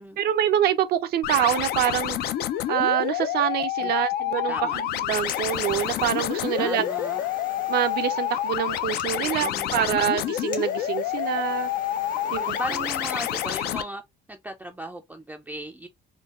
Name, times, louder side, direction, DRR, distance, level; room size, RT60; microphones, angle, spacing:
voice 1, 0.2-2.2 2.7-4.5 5.1-6.8 7.7-11.7 12.3-12.6, right 11 dB, 70° right, 0.5 m, -25 dB
sound 1, 1.2-13.8, left 11 dB, 70° left, 0.4 m, -28 dB
voice 2, 4.5-4.8 6.6-7.3 9.2-10.1 12.2-14.0 14.3-15.9, right 1 dB, 10° right, 0.4 m, -37 dB
sound 2, 4.9-13.6, left 5 dB, 50° left, 1.1 m, -43 dB
3.8 x 2.2 x 2.4 m
cardioid pair, 110°, 17 cm